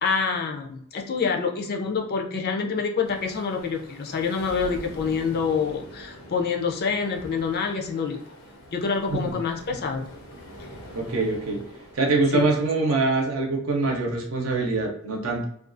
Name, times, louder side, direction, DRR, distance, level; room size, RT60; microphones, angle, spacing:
voice 1, 0.0-8.2 8.7-10.1 12.3-12.5, left 5 dB, 50° left, 2 dB, 0.4 m, -27 dB
sound 1, 3.0-12.4, equal, 90° left, 0.7 m, -44 dB
voice 2, 10.9-11.6 11.9-15.4, right 3 dB, 75° right, 0 dB, 0.7 m, -24 dB
2.4 x 2.3 x 2.5 m, 0.70 s
head